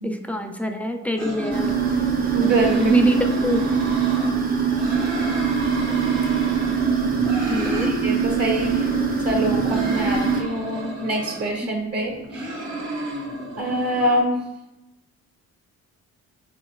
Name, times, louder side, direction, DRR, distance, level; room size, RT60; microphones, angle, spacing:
voice 1, 0.0-1.7 2.7-3.2 3.4-3.7 7.5-7.9, left 1 dB, 5° left, 5 dB, 0.4 m, -24 dB
sound 1, 1.2-4.3 4.7-7.9 8.2-11.5 12.0-14.2, right 1 dB, 75° right, 1.6 m, -31 dB
sound 2, 1.5-10.4, right 6 dB, 30° right, 0.8 m, -23 dB
voice 2, 2.3-3.1 7.8-8.9 9.2-12.5 13.6-14.4, right 1 dB, 55° right, 0 dB, 1.4 m, -25 dB
5.1 x 4.0 x 2.3 m, 0.93 s
cardioid pair, 90°, 30 cm